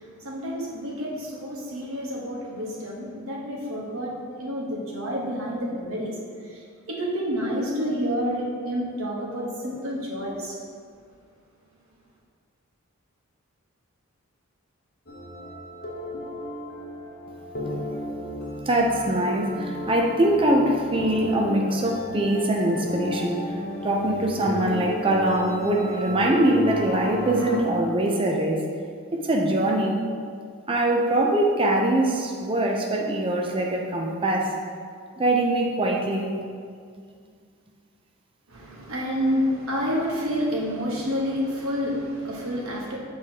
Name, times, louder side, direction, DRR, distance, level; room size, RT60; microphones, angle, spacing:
voice 1, 0.0-6.1 6.4-10.6 38.5-43.0, equal, 75° right, -3 dB, 1.1 m, -29 dB
sound 1, 15.1-27.6, left 1 dB, 45° left, 0.8 m, -33 dB
voice 2, 18.7-23.4 23.8-28.6 29.1-30.0 30.7-34.5 35.2-36.3, right 1 dB, 25° right, 0 dB, 0.5 m, -23 dB
6.9 x 4.8 x 2.8 m, 2.1 s
head